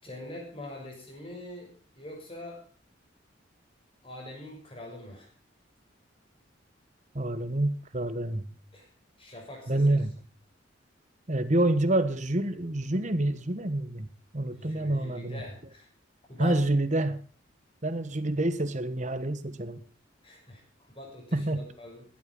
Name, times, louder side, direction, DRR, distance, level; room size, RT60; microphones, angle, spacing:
voice 1, 0.0-1.7 2.0-2.6 4.0-5.3 8.7-8.9 9.2-10.0 14.5-15.9 16.3-16.6 20.2-22.0, left 1 dB, 30° left, 1 dB, 6.3 m, -43 dB
voice 2, 7.1-8.6 9.7-10.1 11.3-15.4 16.4-17.2 17.8-19.8 21.3-21.6, right 1 dB, 40° right, 12 dB, 1.3 m, -27 dB
15.5 x 11.5 x 5.4 m, 0.39 s
head